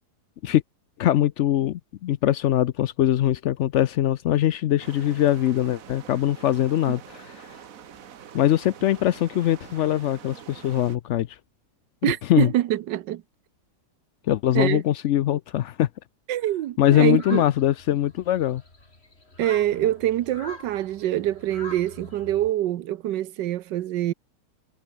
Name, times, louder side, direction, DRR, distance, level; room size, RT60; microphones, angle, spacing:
voice 1, 1.0-7.5 8.3-11.4 12.0-12.5 14.3-15.9 16.8-18.6, left 12 dB, 80° left, 0.6 m, -22 dB
sound 1, 4.8-11.0, right 8 dB, 55° right, 1.4 m, -45 dB
voice 2, 12.0-13.2 14.5-14.8 16.3-17.4 19.4-24.1, right 13 dB, 85° right, 1.4 m, -25 dB
sound 2, 17.0-22.5, left 2 dB, 35° left, 4.3 m, -44 dB
omnidirectional pair, 1.9 m